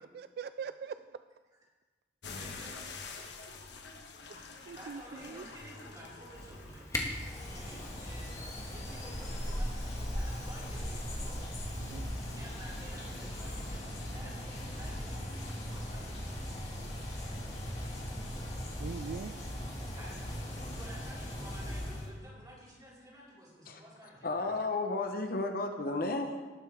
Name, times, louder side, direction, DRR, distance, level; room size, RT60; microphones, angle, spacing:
voice 1, 0.1-1.0 4.7-5.4 11.8-12.1 18.8-19.3, right 6 dB, 60° right, 12 dB, 0.3 m, -41 dB
sound 1, 2.2-18.8, left 4 dB, 70° left, 1.4 m, -51 dB
voice 2, 2.3-3.5 4.7-6.9 7.5-8.4 8.7-11.4 12.2-17.0 19.9-24.3, equal, 20° right, -7 dB, 4.6 m, -52 dB
Camera, 6.3-13.8, left 1 dB, 15° left, 1.6 m, -45 dB
sound 2, 7.0-22.1, equal, 40° left, 3.3 m, -39 dB
voice 3, 24.2-26.5, left 2 dB, 55° left, 4 dB, 1.1 m, -33 dB
19.0 x 8.6 x 3.5 m, 1.3 s
head